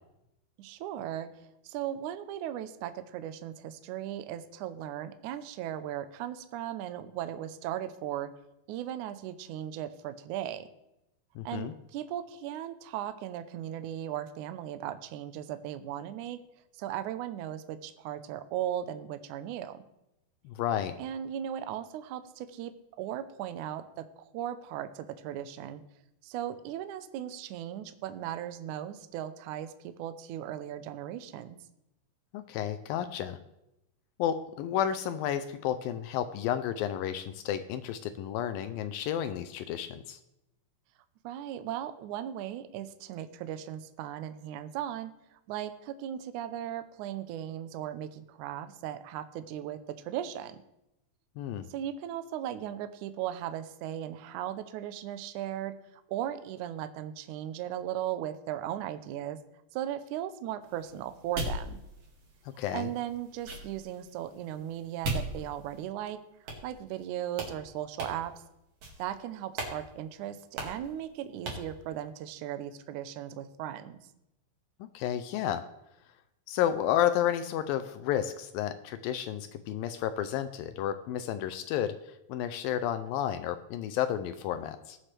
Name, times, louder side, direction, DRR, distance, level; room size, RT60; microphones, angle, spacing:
voice 1, 0.6-1.3 1.6-8.3 8.7-10.7 11.5-16.4 16.7-19.8 21.0-22.7 23.0-25.8 26.2-31.6 41.2-45.1 45.5-50.6 51.7-59.4 59.7-61.8 62.7-66.2 66.6-68.3 69.0-74.0, right 11 dB, 85° right, 10 dB, 1.7 m, -37 dB
voice 2, 11.4-11.7 20.5-21.0 32.3-33.4 34.2-40.2 51.4-51.6 62.6-62.9 74.9-75.7 76.5-82.0 82.3-85.0, left 10 dB, 80° left, 10 dB, 2.2 m, -31 dB
sound 1, 60.6-65.9 66.5-67.1 67.3-67.5 68.0-68.4 68.8-69.1 69.5-69.8 70.0-70.1 70.6-70.9 71.4-71.7, right 2 dB, 45° right, 2.7 m, -39 dB
21.0 x 7.4 x 3.3 m, 0.87 s
omnidirectional pair, 4.5 m